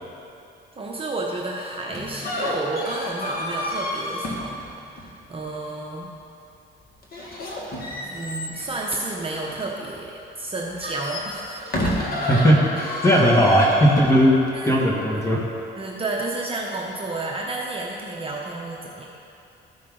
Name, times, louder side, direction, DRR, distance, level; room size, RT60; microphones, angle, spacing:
voice 1, 0.7-4.6 4.9-6.1 8.0-10.1 10.4-11.7 14.5-14.8 15.1-15.2 15.8-19.0, right 2 dB, 30° right, -2 dB, 0.9 m, -31 dB
sound 1, 1.9-5.2 7.0-10.1 10.6-14.8, left 1 dB, 50° left, 1.8 m, -30 dB
voice 2, 12.3-15.5, equal, 15° left, -3 dB, 1.9 m, -18 dB
13.5 x 5.5 x 3.8 m, 2.7 s
cardioid pair, 90°, 20 cm